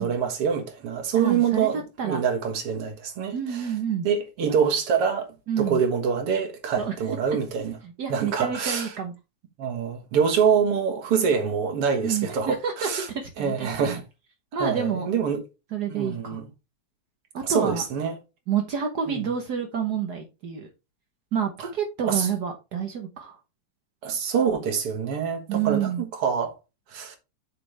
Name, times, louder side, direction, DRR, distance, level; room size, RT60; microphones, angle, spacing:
voice 1, 0.0-3.7 4.0-5.3 5.6-7.8 8.1-8.9 9.6-13.1 13.4-14.0 14.6-15.4 15.9-16.5 17.4-18.1 19.1-19.3 21.6-21.7 22.0-22.3 24.0-26.6 26.9-27.2, right 7 dB, 55° right, 2.2 m, -25 dB
voice 2, 1.1-2.2 3.3-4.1 5.5-5.8 6.8-7.0 7.3-7.4 8.0-9.1 12.0-14.0 14.5-15.1 15.7-16.4 17.3-17.8 18.5-20.7 21.3-23.4 25.5-26.0, right 7 dB, 75° right, 0.9 m, -28 dB
7.7 x 6.3 x 3.3 m
omnidirectional pair, 3.4 m